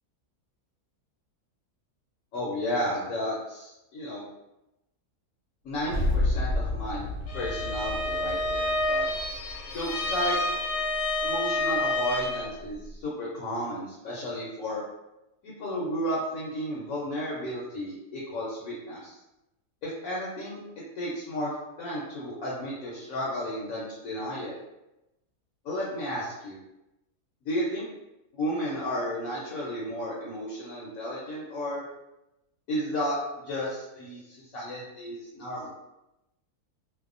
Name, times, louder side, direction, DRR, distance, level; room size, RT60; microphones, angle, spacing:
voice 1, 2.3-4.3 5.6-7.1 7.3-9.1 9.7-10.4 11.2-14.8 15.4-19.2 19.8-20.6 21.0-21.5 21.8-24.5 25.6-26.6 27.4-27.9 28.3-31.9 32.7-33.2 33.4-35.7, equal, 70° left, -5 dB, 1.0 m, -33 dB
sound 1, 5.8-10.1, left 2 dB, 75° right, 1.0 m, -30 dB
Bowed string instrument, 7.3-12.5, left 1 dB, 85° left, 1.2 m, -29 dB
2.6 x 2.1 x 2.4 m, 0.94 s
omnidirectional pair, 1.7 m